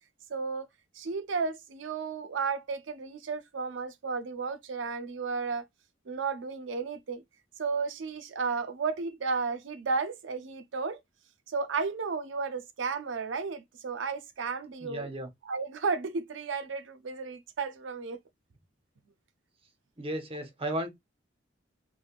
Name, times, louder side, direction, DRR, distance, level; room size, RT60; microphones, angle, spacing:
voice 1, 0.3-0.7 0.9-5.6 6.1-7.2 7.6-11.0 11.5-15.1 15.5-18.2, right 4 dB, 75° right, 0.5 m, -33 dB
voice 2, 14.8-15.3 20.0-20.9, right 1 dB, 30° right, 0.8 m, -34 dB
3.3 x 2.1 x 2.4 m
head